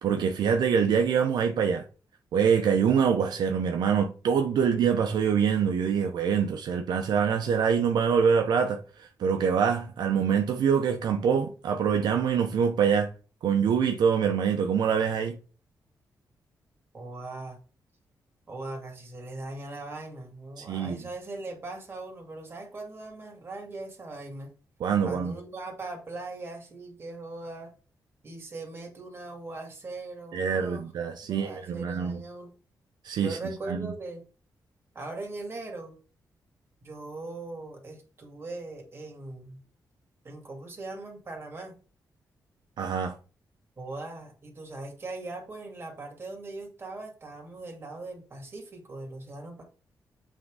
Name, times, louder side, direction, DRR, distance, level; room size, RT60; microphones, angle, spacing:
voice 1, 0.0-1.8 2.3-13.1 13.4-15.4 20.6-21.0 24.8-25.3 30.3-32.2 33.0-33.4 33.7-33.9 42.8-43.1, right 7 dB, 80° right, 0.7 m, -25 dB
voice 2, 16.9-17.6 18.5-24.5 25.0-27.7 28.2-30.9 31.3-32.5 33.2-34.2 34.9-36.0 36.8-39.6 40.2-41.8 43.8-49.6, right 2 dB, 35° right, 2.4 m, -40 dB
7.6 x 3.6 x 4.8 m
cardioid pair, 110°, 7 cm